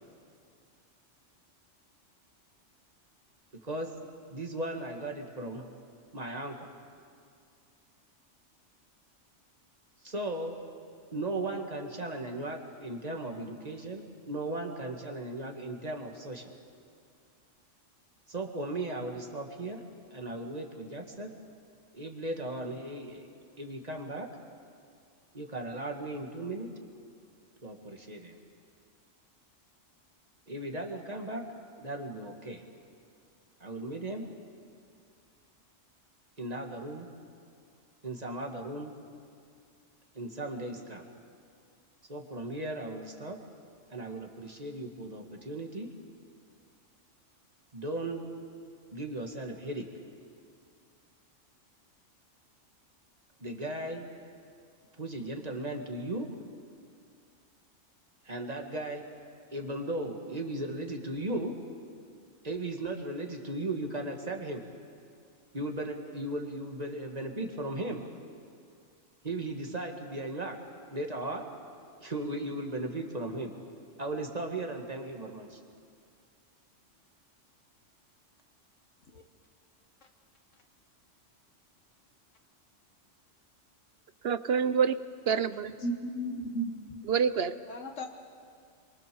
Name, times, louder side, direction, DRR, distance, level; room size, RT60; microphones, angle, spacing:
voice 1, 3.5-3.9 4.3-5.6 6.1-6.7 10.0-10.6 11.1-16.5 18.3-19.8 20.1-21.3 21.9-23.3 23.6-24.3 25.3-26.7 27.6-28.4 30.5-31.4 31.8-32.6 33.6-34.3 36.4-37.1 38.0-38.9 40.1-41.1 42.1-43.4 43.9-45.9 47.7-48.3 48.9-49.9 53.4-54.1 55.0-56.3 58.3-59.1 59.5-61.5 62.4-64.6 65.5-68.0 69.2-70.6 70.9-71.5 72.0-73.5 74.0-75.6, right 1 dB, 30° right, 3 dB, 2.1 m, -36 dB
voice 2, 84.2-85.0 85.3-85.7 87.1-87.5, right 6 dB, 55° right, 13 dB, 0.9 m, -26 dB
voice 3, 85.8-86.9 87.7-88.1, right 1 dB, 80° left, 3 dB, 1.7 m, -35 dB
27.5 x 23.5 x 7.0 m, 2.3 s
omnidirectional pair, 1.3 m